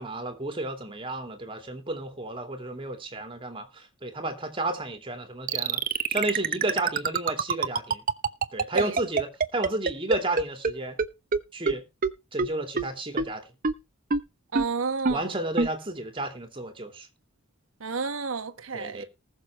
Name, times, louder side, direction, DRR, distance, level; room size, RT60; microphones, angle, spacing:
voice 1, 0.0-5.8 6.1-8.0 8.5-11.0 11.5-11.8 12.3-13.5 15.1-17.1 18.7-19.1, right 2 dB, 25° right, 2.7 m, -32 dB
sound 1, 5.5-10.7 11.0-11.1 11.3-11.4 11.7-11.8 12.0-12.1 12.4-12.5 12.8-12.9 13.2-13.3 13.6-13.7 14.1-14.2 14.6-14.7 15.1-15.2 15.6-15.7, right 4 dB, 45° right, 0.9 m, -24 dB
voice 2, 14.5-15.3 17.8-19.0, right 4 dB, 85° right, 1.2 m, -30 dB
19.5 x 6.7 x 3.3 m
head